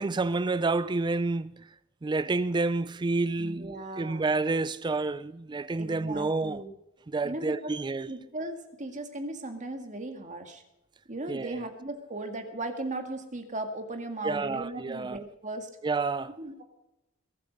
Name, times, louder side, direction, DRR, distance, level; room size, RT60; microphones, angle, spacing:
voice 1, 0.0-1.7 2.0-6.6 7.1-8.1 11.3-11.7 14.2-15.2 15.8-16.4, right 3 dB, 20° right, 0.4 m, -29 dB
voice 2, 3.4-4.4 5.8-6.7 7.2-7.7 8.1-10.6 11.1-15.7 16.4-16.6, right 2 dB, 35° right, 2.0 m, -37 dB
21.5 x 8.5 x 5.3 m
head